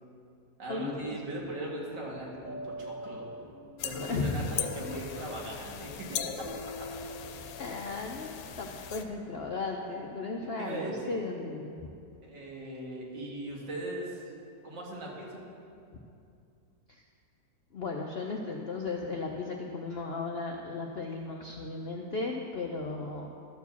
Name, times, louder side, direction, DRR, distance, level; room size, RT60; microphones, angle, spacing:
voice 1, 0.6-3.3 3.8-6.3 10.6-11.2 12.2-14.2 14.6-15.4, right 1 dB, 80° right, -3 dB, 2.5 m, -39 dB
sound 1, 0.8-11.2, equal, 30° right, 0.3 m, -48 dB
sound 2, 3.8-9.0, left 9 dB, 85° left, 1.3 m, -39 dB
voice 2, 4.0-4.5 7.6-11.9 16.9-17.0 17.7-23.3, left 3 dB, 65° left, 1 dB, 0.6 m, -35 dB
13.0 x 4.7 x 7.0 m, 2.5 s
omnidirectional pair, 1.9 m